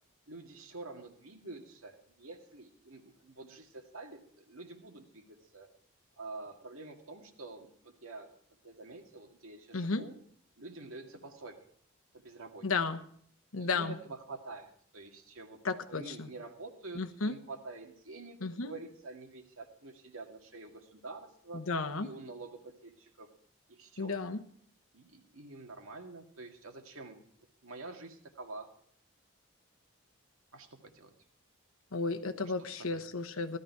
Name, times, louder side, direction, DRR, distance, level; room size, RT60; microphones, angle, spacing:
voice 1, 0.3-5.7 6.2-8.3 8.6-10.1 10.6-11.6 12.1-12.7 13.6-15.6 15.9-21.6 22.0-23.3 23.7-24.1 24.9-27.2 27.6-28.7 30.5-30.7 30.9-31.1 32.4-33.0, right 3 dB, 85° right, 4 dB, 2.0 m, -47 dB
voice 2, 9.7-10.1 12.6-13.0 13.5-13.9 15.6-16.3 16.9-17.4 18.4-18.7 21.5-22.1 24.0-24.4 31.9-33.6, left 4 dB, 85° left, 7 dB, 1.1 m, -33 dB
16.0 x 13.0 x 4.7 m, 0.62 s
head